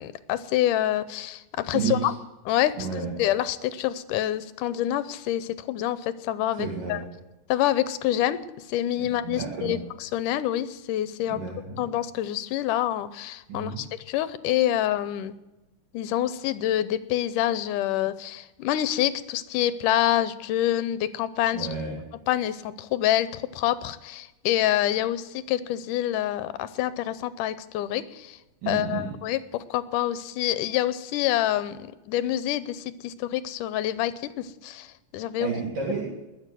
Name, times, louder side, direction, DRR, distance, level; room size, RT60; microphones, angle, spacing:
voice 1, 0.0-2.2 2.5-2.7 3.2-7.0 7.5-8.4 8.7-11.4 11.8-15.3 15.9-21.7 22.3-28.4 28.7-31.8 32.1-35.5, left 12 dB, 80° left, 15 dB, 2.2 m, -27 dB
voice 2, 1.7-2.1 2.7-3.1 6.5-7.0 9.0-9.8 11.3-11.8 13.5-13.8 21.5-22.0 28.6-29.0 35.4-36.0, right 5 dB, 70° right, -3 dB, 4.5 m, -31 dB
21.0 x 7.2 x 7.6 m, 1.0 s
omnidirectional pair, 3.8 m